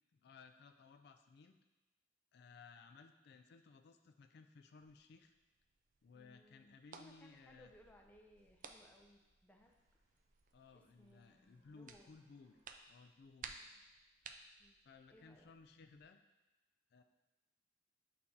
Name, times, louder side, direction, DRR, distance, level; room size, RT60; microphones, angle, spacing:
voice 1, 0.1-1.5 2.3-5.3 6.0-7.7 10.5-12.6 12.9-13.6 14.8-16.2 16.9-17.0, left 4 dB, 60° left, 7 dB, 0.3 m, -60 dB
sound 1, 4.8-16.0, right 5 dB, 45° right, 0.4 m, -59 dB
voice 2, 6.1-9.7 10.7-12.2 13.6-13.7 14.6-14.8 15.1-15.5, equal, 10° left, 1 dB, 0.5 m, -65 dB
sound 2, 7.7-12.7, equal, 70° right, 2.1 m, -81 dB
8.6 x 4.2 x 2.7 m, 1.1 s
head